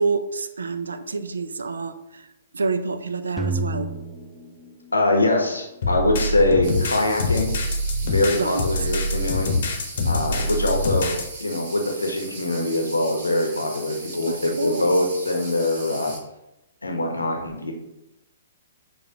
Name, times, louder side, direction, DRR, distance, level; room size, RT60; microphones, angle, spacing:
voice 1, 0.0-2.3 2.5-3.9 8.4-8.6 14.3-14.9, right 4 dB, 75° right, 10 dB, 0.3 m, -27 dB
sound 1, 3.4-5.5, right 2 dB, ahead, 0.4 m, -30 dB
voice 2, 4.9-7.5 8.0-9.5 10.0-11.1 11.4-16.1 16.8-17.7, left 2 dB, 85° left, 2 dB, 0.7 m, -23 dB
sound 2, 5.8-11.2, left 1 dB, 55° left, 0.8 m, -24 dB
sound 3, 6.6-16.2, right 2 dB, 45° right, 1.2 m, -39 dB
6.5 x 2.3 x 2.7 m, 0.89 s
figure-of-eight pair, 120°, 0 cm